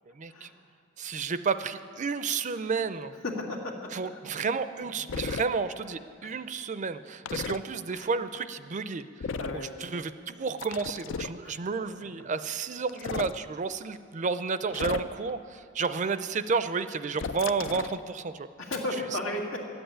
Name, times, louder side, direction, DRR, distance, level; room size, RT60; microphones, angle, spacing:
voice 1, 0.2-0.5 1.0-3.1 3.9-9.0 9.5-18.5, right 5 dB, 40° right, 12 dB, 0.5 m, -31 dB
voice 2, 3.2-4.2 4.8-4.9 6.2-6.4 7.9-8.1 9.4-9.9 11.4-11.6 12.2-12.3 18.6-19.7, left 1 dB, 90° left, -1 dB, 2.2 m, -35 dB
sound 1, 5.1-5.5 7.3-7.6 9.2-9.6 10.6-11.4 12.9-13.4 14.7-15.3 17.2-18.0, left 5 dB, 70° left, 0.4 m, -34 dB
13.0 x 8.0 x 10.0 m, 2.4 s
head